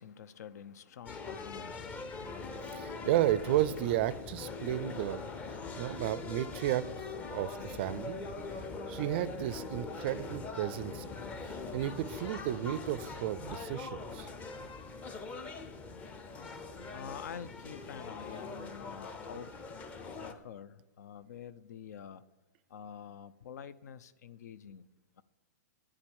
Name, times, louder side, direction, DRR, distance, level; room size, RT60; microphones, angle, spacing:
voice 1, 0.0-3.1 16.9-19.5 20.1-22.2 22.7-24.9 25.2-25.3, left 8 dB, 65° left, 16 dB, 0.7 m, -47 dB
sound 1, 1.1-20.3, left 3 dB, 15° left, 0.7 m, -42 dB
sound 2, 1.5-12.0, left 6 dB, 40° left, 1.8 m, -53 dB
voice 2, 2.7-5.2 5.8-8.3 8.9-11.1 11.4-14.3, right 13 dB, 35° right, 16 dB, 0.5 m, -33 dB
9.7 x 7.6 x 8.7 m, 1.1 s
hypercardioid pair, 165°, 10 cm